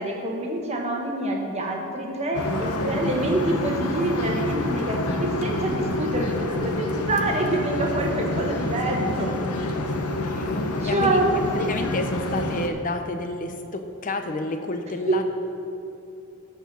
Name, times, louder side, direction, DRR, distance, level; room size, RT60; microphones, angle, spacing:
voice 1, 0.0-9.3 10.8-11.3 15.1-15.2, right 2 dB, 30° right, 0 dB, 1.1 m, -26 dB
sound 1, 2.3-12.7, left 2 dB, 80° left, 0.7 m, -28 dB
voice 2, 2.4-3.4 10.2-15.2, left 2 dB, 35° left, 6 dB, 0.6 m, -30 dB
13.5 x 4.5 x 6.1 m, 2.8 s
head